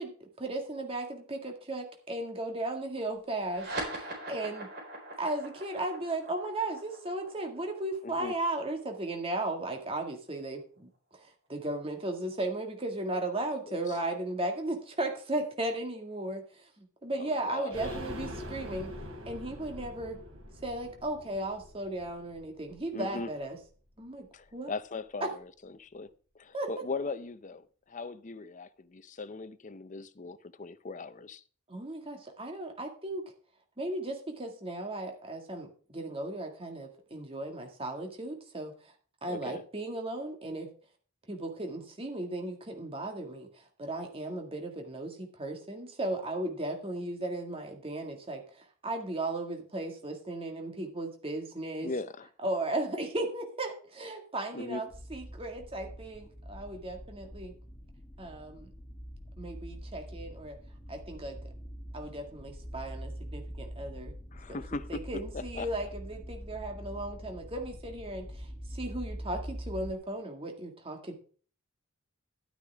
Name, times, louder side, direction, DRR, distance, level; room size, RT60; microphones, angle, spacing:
voice 1, 0.0-3.7 4.0-4.7 5.2-10.9 11.5-16.4 16.8-18.9 19.3-20.2 20.6-23.6 24.0-24.7 25.2-25.3 26.5-26.7 31.7-33.2 33.8-38.7 39.2-40.7 41.3-43.5 43.8-51.9 52.4-57.5 58.2-58.7 59.4-60.6 60.9-61.4 61.9-64.1 64.5-71.1, right 1 dB, 25° right, 1.9 m, -36 dB
sound 1, 3.4-10.3, right 1 dB, 50° right, 4.2 m, -42 dB
voice 2, 8.0-8.3 13.7-14.0 17.2-17.8 22.9-23.3 24.3-26.1 26.4-31.4 39.3-39.6 51.8-52.3 54.5-54.8 64.3-65.0 65.3-65.7, left 3 dB, 35° left, 0.6 m, -39 dB
sound 2, 17.7-23.3 23.6-23.7 24.0-24.1, equal, 75° right, 3.0 m, -44 dB
sound 3, 54.9-69.9, equal, 20° left, 1.7 m, -44 dB
11.5 x 9.6 x 3.5 m
head